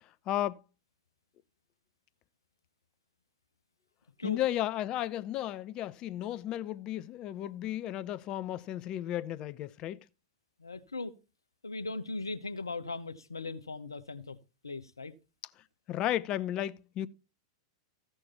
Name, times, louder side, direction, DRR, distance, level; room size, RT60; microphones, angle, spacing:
voice 1, 0.3-0.6 4.2-10.0 15.9-17.1, left 12 dB, 35° left, 0.7 m, -34 dB
voice 2, 10.6-11.1 11.6-14.4 14.6-15.1, left 3 dB, 85° left, 1.0 m, -38 dB
15.0 x 6.4 x 4.3 m
figure-of-eight pair, 95°, 2 cm